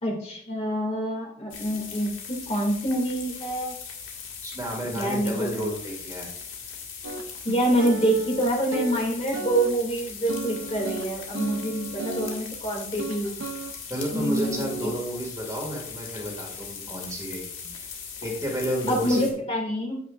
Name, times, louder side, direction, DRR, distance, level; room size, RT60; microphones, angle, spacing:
voice 1, 0.0-3.7 4.9-5.7 7.4-13.3 14.1-14.9 18.9-20.0, right 1 dB, 30° left, 0 dB, 2.2 m, -26 dB
sound 1, 1.5-19.3, left 6 dB, 70° left, 1.9 m, -39 dB
voice 2, 4.4-6.3 13.9-17.7 18.2-19.2, equal, 15° right, -1 dB, 1.9 m, -31 dB
sound 2, 7.0-12.4 13.0-13.7 14.1-15.0, right 2 dB, 70° right, 0.7 m, -34 dB
9.1 x 8.8 x 2.4 m, 0.65 s
head